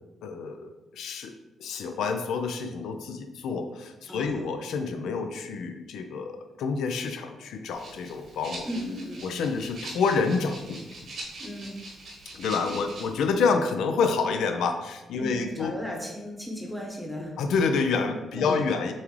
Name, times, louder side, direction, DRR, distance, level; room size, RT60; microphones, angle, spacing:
voice 1, 0.2-1.3 1.6-8.7 9.2-10.8 12.3-15.7 17.4-18.9, left 5 dB, 85° left, 6 dB, 0.4 m, -28 dB
voice 2, 4.1-4.5 8.6-9.3 11.4-11.8 15.2-17.4 18.3-18.7, equal, 5° right, 0 dB, 0.8 m, -36 dB
Rattle (instrument), 7.7-13.2, right 2 dB, 65° right, 1.3 m, -42 dB
6.9 x 2.4 x 3.1 m, 1.1 s
cardioid pair, 90°, 0 cm